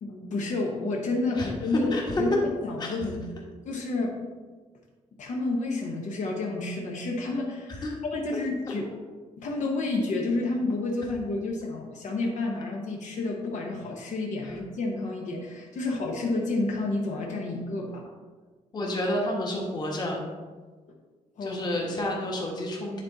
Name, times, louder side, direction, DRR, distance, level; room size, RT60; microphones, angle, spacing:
voice 1, 0.0-2.3 2.6-3.3 3.7-4.2 5.2-8.9 9.4-18.1 21.4-21.6, left 2 dB, 70° left, 0 dB, 0.9 m, -30 dB
voice 2, 18.7-20.2 21.4-23.0, left 1 dB, 30° left, -2 dB, 1.3 m, -30 dB
9.8 x 4.0 x 3.9 m, 1.4 s
wide cardioid pair, 175°, 13 cm